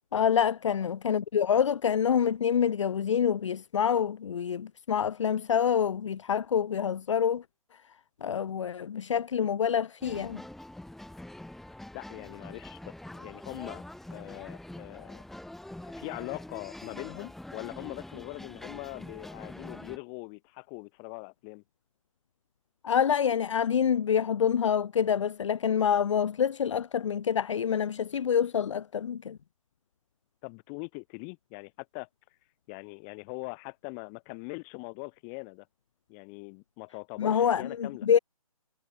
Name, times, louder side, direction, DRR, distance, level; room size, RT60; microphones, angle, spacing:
voice 1, 0.1-7.4 7.7-7.9 8.2-10.4 22.8-29.4 37.2-38.2, left 8 dB, 55° left, 0.8 m, -27 dB
sound 1, 10.0-20.0, left 1 dB, ahead, 1.4 m, -45 dB
voice 2, 11.9-13.8 14.1-15.2 16.0-21.6 30.4-32.1 32.7-35.7 36.1-38.1, left 40 dB or more, 25° left, 4.6 m, -42 dB
figure-of-eight pair, 140°, 19 cm